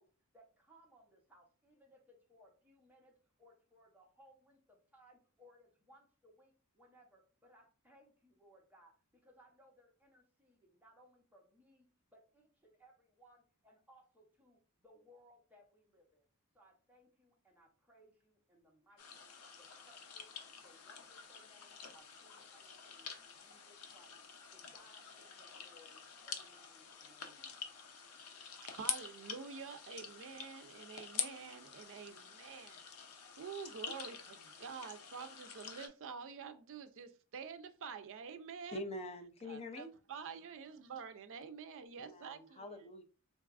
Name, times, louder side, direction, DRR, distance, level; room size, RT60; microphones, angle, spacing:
voice 1, 0.0-16.2 16.5-20.3 20.6-24.2 24.5-27.7, equal, 10° right, 0.8 m, -66 dB
sound 1, 19.0-35.9, left 7 dB, 80° left, 0.6 m, -47 dB
voice 2, 28.4-32.8 33.4-38.8 39.4-42.9, right 6 dB, 60° right, 0.4 m, -48 dB
voice 3, 38.7-39.9 42.0-43.0, left 1 dB, 30° left, 0.4 m, -45 dB
3.9 x 2.3 x 2.4 m
head